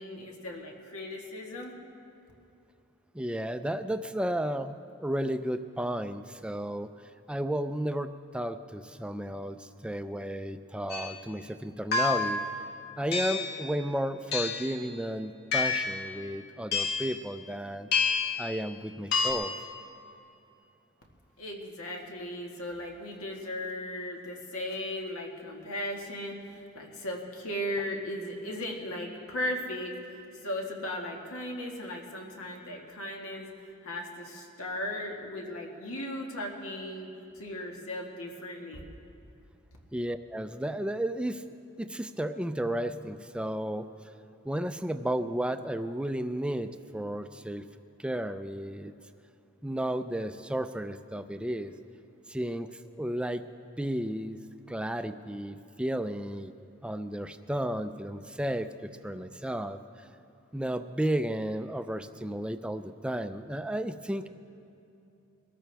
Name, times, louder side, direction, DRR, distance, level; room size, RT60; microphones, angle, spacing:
voice 1, 0.0-1.8 21.4-33.5 33.8-37.1 37.4-38.9, left 1 dB, 90° left, 0 dB, 1.8 m, -37 dB
voice 2, 3.1-6.9 7.3-12.4 13.0-17.9 18.4-19.5 39.9-41.4 41.8-43.9 44.4-47.6 48.0-48.9 49.6-51.7 52.3-53.4 53.8-54.4 54.7-56.5 56.8-60.1 60.5-64.3, right 1 dB, 5° right, 9 dB, 0.4 m, -33 dB
sound 1, 10.9-11.1 11.9-12.4 13.1-13.5 14.3-14.7 15.5-16.0 16.7-17.1 17.9-18.4 19.1-19.3, left 5 dB, 50° left, 1.6 m, -28 dB
22.5 x 13.5 x 3.4 m, 2.8 s
head